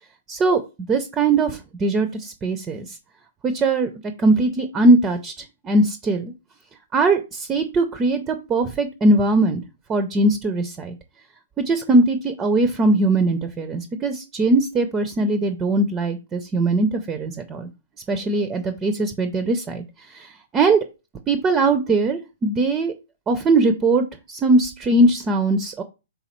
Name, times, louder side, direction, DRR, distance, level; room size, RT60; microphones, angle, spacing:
voice 1, 0.3-0.6 0.9-2.9 3.4-3.9 4.2-5.3 5.6-6.3 6.9-9.6 9.9-10.9 11.6-17.7 18.1-20.8 21.3-22.9 23.3-25.8, right 2 dB, 20° right, 9 dB, 0.4 m, -20 dB
4.1 x 3.5 x 3.0 m, 0.29 s
hypercardioid pair, 130°, 0 cm